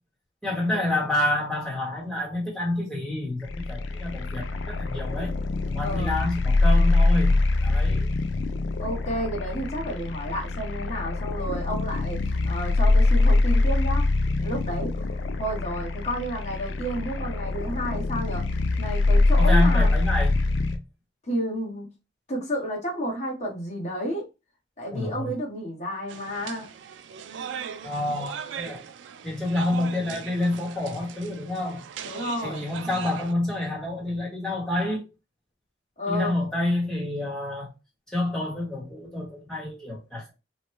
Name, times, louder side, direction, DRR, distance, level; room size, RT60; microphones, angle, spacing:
voice 1, 0.4-5.3 5.6-8.1 19.4-20.4 24.9-25.3 27.8-28.8 29.2-31.8 32.4-35.1 36.1-37.7 38.1-40.3, left 1 dB, 5° left, 1.1 m, -28 dB
sound 1, 3.4-20.8, left 2 dB, 90° left, 0.4 m, -24 dB
voice 2, 5.8-6.2 8.8-14.1 14.4-19.9 21.2-21.9 22.3-24.2 24.8-26.7 32.0-32.7 36.0-36.4, equal, 40° left, 1.2 m, -31 dB
sound 2, 26.1-33.3, right 7 dB, 85° right, 0.3 m, -39 dB
3.1 x 2.2 x 3.1 m
head